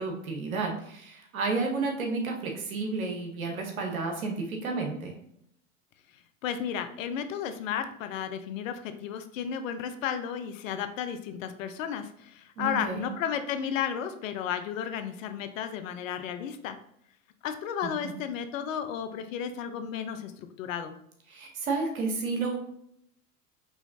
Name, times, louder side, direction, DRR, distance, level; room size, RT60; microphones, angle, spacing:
voice 1, 0.0-5.2 12.6-13.1 21.3-22.6, right 3 dB, 85° right, 1 dB, 1.1 m, -31 dB
voice 2, 6.4-16.8 17.4-21.0, left 8 dB, 70° left, 9 dB, 0.6 m, -33 dB
4.8 x 3.0 x 2.7 m, 0.72 s
hypercardioid pair, 90°, 41 cm